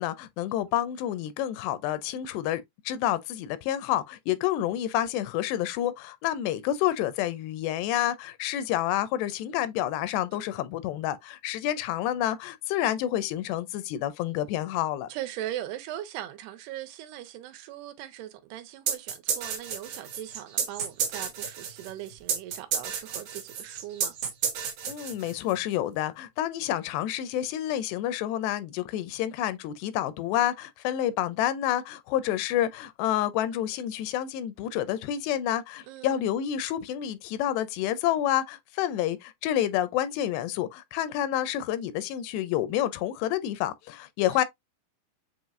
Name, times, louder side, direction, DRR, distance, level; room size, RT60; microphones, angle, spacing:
voice 1, 0.0-15.1 24.9-44.4, left 12 dB, 85° left, 2.7 m, -29 dB
voice 2, 15.1-24.1 35.9-36.2 44.3-44.4, right 13 dB, 80° right, 2.7 m, -39 dB
sound 1, 18.9-25.6, right 7 dB, 65° right, 1.6 m, -31 dB
7.3 x 2.9 x 2.5 m
omnidirectional pair, 4.8 m